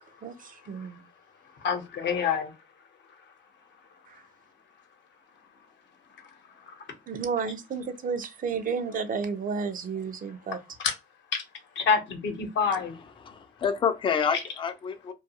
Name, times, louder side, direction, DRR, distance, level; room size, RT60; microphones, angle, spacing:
voice 1, 0.2-1.0 7.1-10.6, right 5 dB, 45° right, 0.4 m, -32 dB
voice 2, 1.6-2.5 6.7-6.9 10.5-10.9 11.3-11.4 11.7-13.0, left 5 dB, 65° left, 0.8 m, -27 dB
voice 3, 13.2-15.1, left 7 dB, 25° left, 0.4 m, -28 dB
2.3 x 2.3 x 2.7 m
cardioid pair, 90°, 20 cm